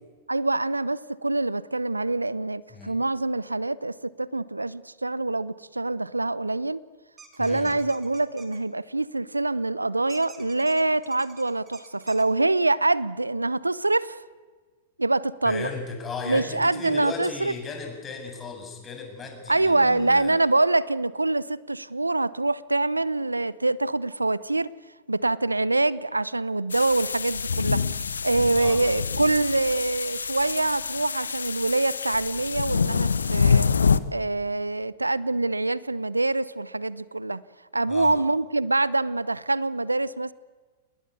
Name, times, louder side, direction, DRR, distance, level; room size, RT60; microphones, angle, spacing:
voice 1, 0.3-6.8 7.4-14.2 15.0-15.7 16.2-17.5 19.5-24.7 25.1-27.8 28.2-33.7 34.1-37.4 37.7-40.3, right 2 dB, 90° right, 20 dB, 0.7 m, -25 dB
sound 1, 7.2-8.6 10.1-12.2, right 6 dB, 20° right, 3.9 m, -49 dB
voice 2, 7.4-7.7 15.4-20.3 28.5-28.8 37.9-38.1, left 4 dB, 20° left, 3 dB, 7.6 m, -36 dB
sound 2, 26.7-34.0, left 5 dB, 80° left, 1.0 m, -26 dB
28.5 x 20.5 x 8.4 m, 1.4 s
figure-of-eight pair, 100°, 0 cm